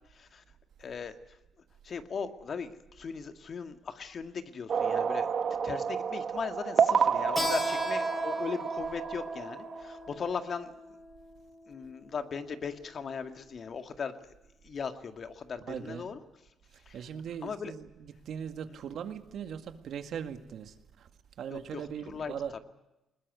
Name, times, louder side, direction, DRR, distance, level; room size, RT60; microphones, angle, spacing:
voice 1, 0.1-0.4 0.8-1.4 1.8-5.3 5.6-10.8 11.7-14.3 14.6-16.2 16.9-17.0 17.4-17.7 18.7-18.8 21.5-22.6, left 6 dB, 50° left, 2.1 m, -38 dB
sound 1, 4.7-10.1, right 7 dB, 50° right, 1.4 m, -29 dB
Keyboard (musical), 7.4-12.6, left 2 dB, 15° left, 4.8 m, -39 dB
voice 2, 15.7-16.1 16.9-21.1 21.4-22.6, right 8 dB, 70° right, 2.0 m, -40 dB
21.0 x 20.5 x 9.5 m
cardioid pair, 90°, 0 cm